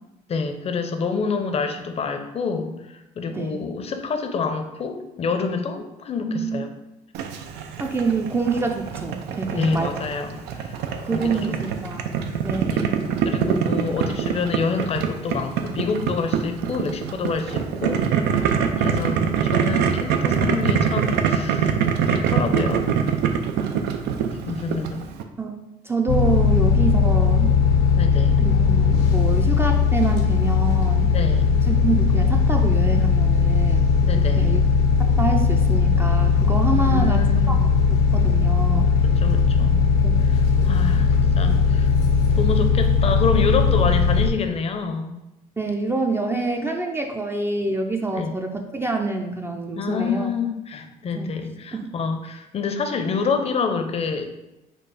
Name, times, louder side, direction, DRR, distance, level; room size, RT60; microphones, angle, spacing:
voice 1, 0.3-6.7 9.6-10.8 11.1-11.6 11.8-11.9 12.7-12.9 13.2-21.8 22.1-22.9 24.3-25.0 28.0-28.4 31.1-31.6 34.0-34.6 36.7-37.6 39.0-39.9 40.2-41.9 42.3-45.2 48.1-48.3 49.7-54.3, left 5 dB, 35° left, 6 dB, 0.6 m, -27 dB
voice 2, 3.3-3.6 6.3-6.7 7.8-9.9 11.0-12.1 12.4-12.9 23.6-23.9 25.4-25.5 25.9-27.6 28.4-31.1 31.7-33.9 34.4-34.6 35.2-37.2 37.5-37.6 38.1-38.9 40.0-40.2 45.6-50.3 51.2-51.3 51.7-51.8, right 3 dB, 15° right, 3 dB, 0.4 m, -26 dB
Boiling, 7.1-25.2, right 7 dB, 85° right, 0.5 m, -24 dB
sound 1, 26.1-44.3, left 5 dB, 85° left, 0.8 m, -18 dB
4.5 x 2.4 x 4.8 m, 0.96 s
cardioid pair, 110°, 17 cm